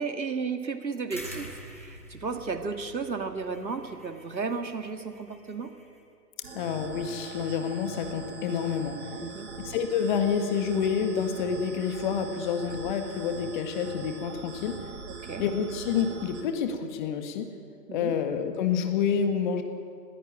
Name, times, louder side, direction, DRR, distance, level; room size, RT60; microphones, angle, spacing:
voice 1, 0.0-5.7 9.2-9.5 15.1-15.4 17.9-18.1, right 4 dB, 85° right, 6 dB, 2.3 m, -34 dB
sound 1, 1.1-6.0, right 1 dB, 10° left, 0.5 m, -46 dB
sound 2, 6.4-16.4, right 5 dB, 40° right, 3.4 m, -41 dB
voice 2, 6.5-9.0 9.6-14.8 15.4-17.5 17.9-19.6, left 7 dB, 30° left, 6 dB, 1.8 m, -28 dB
21.0 x 15.0 x 8.9 m, 2.4 s
figure-of-eight pair, 140°, 50 cm